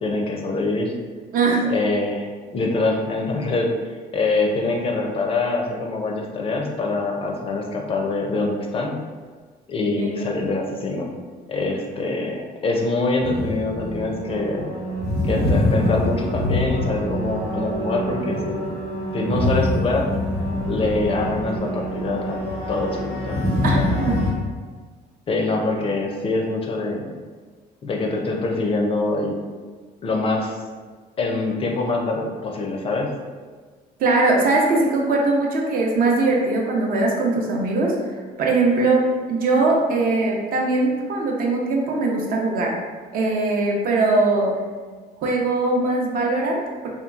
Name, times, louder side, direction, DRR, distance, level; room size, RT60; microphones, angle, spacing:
voice 1, 0.0-0.9 1.7-3.7 4.1-8.9 9.7-11.1 11.5-14.7 15.2-18.7 19.1-20.1 20.7-22.4 22.7-23.4 23.7-24.1 25.3-27.1 27.8-29.4 30.0-30.6 31.2-33.1, left 3 dB, 35° left, 1 dB, 0.4 m, -24 dB
voice 2, 1.3-1.7 10.0-10.3 23.6-24.2 34.0-37.9 38.4-39.0 39.3-42.7 43.1-44.5 45.2-46.9, right 3 dB, 60° right, -1 dB, 0.6 m, -21 dB
sound 1, 13.2-24.3, left 1 dB, 40° right, 1.0 m, -25 dB
2.8 x 2.3 x 2.3 m, 1.4 s
cardioid pair, 110°, 17 cm